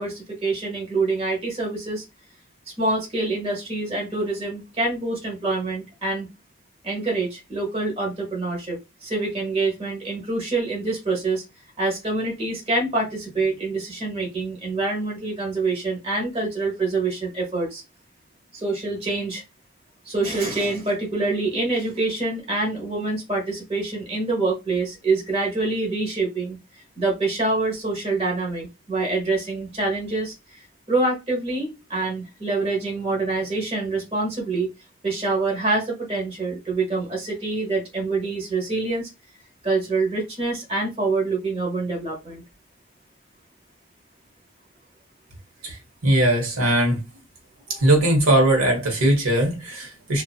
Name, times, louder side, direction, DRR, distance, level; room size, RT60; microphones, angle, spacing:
voice 1, 0.0-2.0 2.8-6.3 6.8-11.4 11.8-17.8 18.5-19.4 20.0-30.6 30.9-34.7 35.0-39.1 39.6-42.4, right 3 dB, 30° right, 1.0 m, -26 dB
voice 2, 46.0-47.0 47.7-50.2, right 1 dB, 85° right, 1.1 m, -19 dB
2.7 x 2.4 x 2.3 m
head